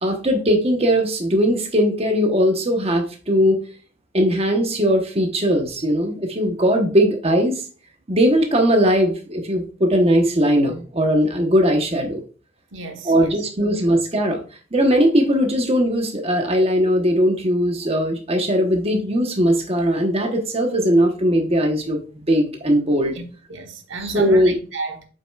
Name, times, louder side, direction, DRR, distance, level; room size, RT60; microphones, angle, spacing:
voice 1, 0.0-3.6 4.1-7.6 8.1-12.2 13.0-14.4 14.7-23.1 24.0-24.5, equal, 35° right, 1.1 m, -19 dB
voice 2, 12.7-13.9 23.1-23.2 23.5-25.0, right 3 dB, 85° right, 1.2 m, -33 dB
7.7 x 5.9 x 2.4 m
head